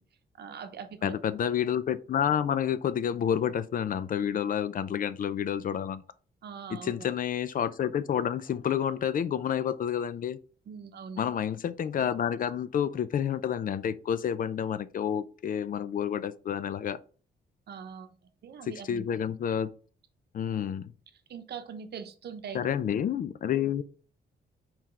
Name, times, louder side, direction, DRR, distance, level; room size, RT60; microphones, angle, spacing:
voice 1, 0.4-1.2 6.4-7.1 10.7-11.3 17.7-18.1 18.4-19.0 21.3-22.6, right 6 dB, 65° right, 0.8 m, -42 dB
voice 2, 1.0-6.0 6.7-10.4 11.2-17.0 18.6-19.7 20.3-20.9 22.5-23.8, left 9 dB, 50° left, 0.4 m, -29 dB
4.3 x 3.9 x 3.1 m
cardioid pair, 100°, 18 cm